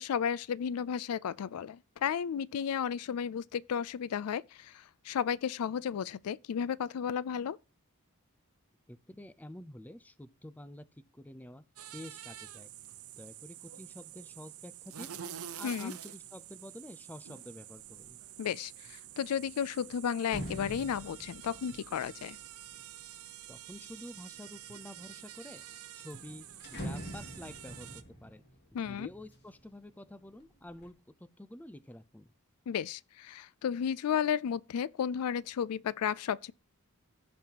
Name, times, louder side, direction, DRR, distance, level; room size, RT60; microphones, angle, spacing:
voice 1, 0.0-7.6 15.6-15.9 18.4-22.4 28.7-29.1 32.7-36.5, left 8 dB, 80° left, 0.4 m, -33 dB
voice 2, 8.9-10.8 11.1-11.6 11.9-12.7 13.2-15.1 15.6-18.2 23.5-25.6 25.9-26.5 26.7-28.4 28.8-32.3, left 1 dB, 5° left, 0.5 m, -49 dB
sound 1, 11.8-28.0, right 11 dB, 70° right, 0.8 m, -48 dB
sound 2, 17.9-18.2 18.6-24.0 24.6-25.2 25.6-25.7 26.0-29.9 30.3-30.9, equal, 50° left, 2.4 m, -46 dB
15.5 x 5.4 x 2.9 m
head